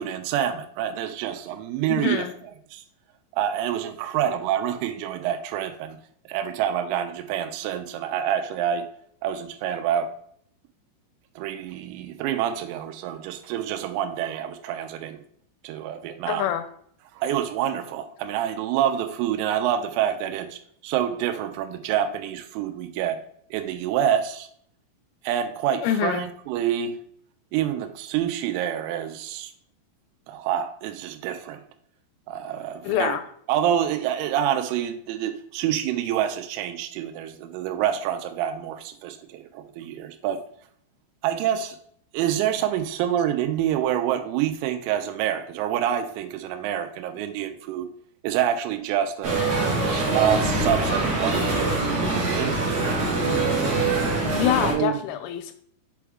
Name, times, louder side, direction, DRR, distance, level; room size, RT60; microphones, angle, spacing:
voice 1, 0.0-2.8 3.3-6.0 6.3-8.9 9.2-10.1 11.4-15.2 15.6-16.5 17.1-23.2 23.5-24.5 25.2-27.0 27.5-29.5 30.3-31.6 32.3-33.2 33.5-40.4 41.2-41.8 42.1-47.9 48.2-49.4 49.9-52.7 54.6-55.0, right 10 dB, 90° right, 8 dB, 3.3 m, -27 dB
voice 2, 1.9-2.3 16.3-16.6 25.8-26.3 32.8-33.2 54.4-55.5, left 10 dB, 85° left, 9 dB, 2.8 m, -25 dB
sound 1, 49.2-54.7, right 2 dB, 65° right, 1.4 m, -24 dB
7.0 x 4.5 x 3.5 m, 0.63 s
omnidirectional pair, 6.0 m